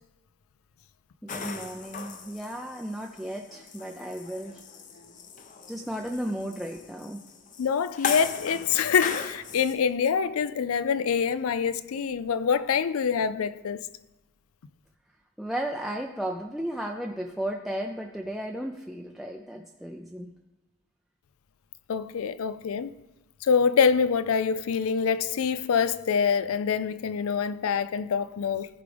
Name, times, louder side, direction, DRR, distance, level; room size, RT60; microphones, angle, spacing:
voice 1, 1.2-4.6 5.7-7.2 15.4-20.3, right 1 dB, ahead, 0.4 m, -34 dB
sound 1, 1.3-9.7, left 5 dB, 35° left, 0.6 m, -38 dB
voice 2, 7.6-13.9 21.9-22.9 23.4-28.7, left 6 dB, 85° left, 0.4 m, -25 dB
14.5 x 5.0 x 3.4 m
head